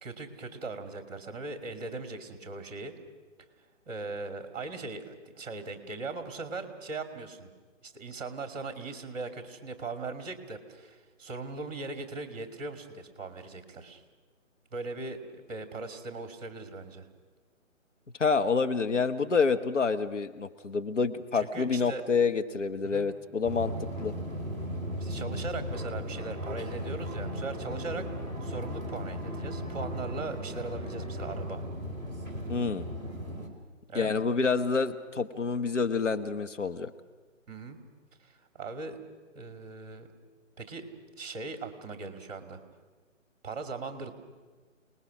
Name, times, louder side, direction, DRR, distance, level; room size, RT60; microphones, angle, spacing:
voice 1, 0.0-2.9 3.9-7.5 7.8-14.0 14.7-15.2 15.5-17.1 21.3-22.0 22.8-23.1 25.0-28.1 28.4-31.6 33.9-34.1 37.5-37.8 38.2-39.0 39.3-40.1 40.6-40.9 41.2-42.6 43.4-44.1, right 3 dB, 30° right, 7 dB, 2.6 m, -39 dB
voice 2, 18.2-23.7 24.0-24.1 32.5-32.9 33.9-36.9, left 5 dB, 65° left, 8 dB, 1.5 m, -28 dB
sound 1, 23.4-33.5, equal, 5° left, 3.1 m, -36 dB
29.0 x 20.0 x 6.3 m, 1.3 s
figure-of-eight pair, 155°, 40 cm